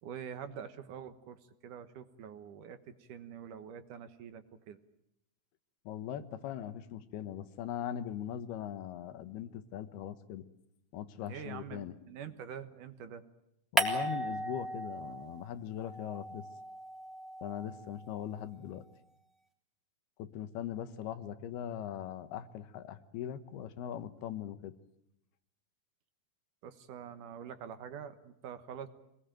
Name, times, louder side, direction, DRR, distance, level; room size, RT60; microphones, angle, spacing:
voice 1, 0.0-4.8 11.3-13.2 26.6-28.9, right 8 dB, 65° right, 10 dB, 2.5 m, -45 dB
voice 2, 5.9-10.5 10.9-12.0 13.7-16.5 17.4-18.8 20.2-24.8, left 10 dB, 85° left, 12 dB, 3.3 m, -40 dB
sound 1, 13.8-15.4 15.7-18.2, equal, ahead, 2.9 m, -36 dB
25.5 x 20.0 x 9.1 m, 0.80 s
omnidirectional pair, 4.4 m